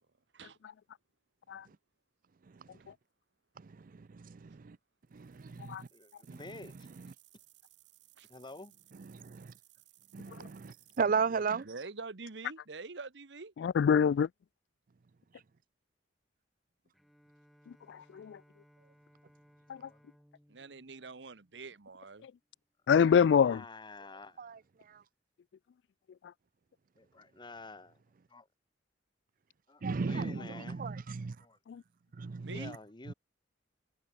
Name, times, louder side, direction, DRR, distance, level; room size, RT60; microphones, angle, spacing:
voice 1, 2.4-2.9 3.6-4.8 5.1-5.9 6.3-7.1 8.9-9.5 10.1-11.7 15.3-15.4 24.4-25.0 29.8-31.5 32.1-32.7 33.1-33.2, right 5 dB, 50° right, 0.5 m, -36 dB
sound 1, 5.0-11.0, right 16 dB, 90° right, 3.4 m, -63 dB
voice 2, 5.9-6.9 8.3-8.7 19.8-20.0 23.4-24.5 27.0-28.0 28.3-28.5 29.7-30.8 31.4-31.6 32.5-33.1, left 2 dB, 25° left, 1.3 m, -49 dB
voice 3, 11.6-13.5 20.5-22.3 32.4-32.8, right 4 dB, 70° right, 1.1 m, -45 dB
voice 4, 13.6-14.3 17.9-18.4 19.7-19.8 22.9-23.6 31.7-31.8, left 7 dB, 70° left, 0.3 m, -25 dB
Bowed string instrument, 16.9-22.2, equal, ahead, 4.7 m, -65 dB
head